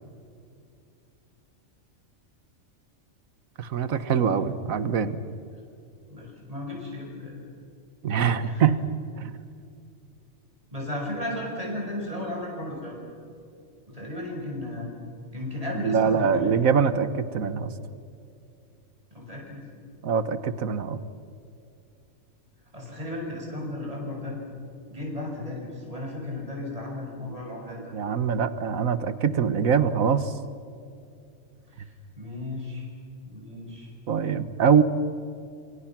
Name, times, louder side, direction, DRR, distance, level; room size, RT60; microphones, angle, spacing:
voice 1, 3.6-5.2 8.0-8.8 9.2-9.3 15.8-17.7 20.0-21.0 27.9-30.3 34.1-34.8, right 6 dB, 75° right, 13 dB, 1.6 m, -23 dB
voice 2, 6.1-7.4 8.1-8.6 10.7-13.0 13.9-14.9 15.3-16.5 19.1-19.7 22.7-24.4 24.9-27.9 31.7-32.9 33.2-33.9, left 1 dB, 25° right, -1 dB, 6.2 m, -35 dB
29.0 x 26.5 x 6.1 m, 2.5 s
omnidirectional pair, 1.5 m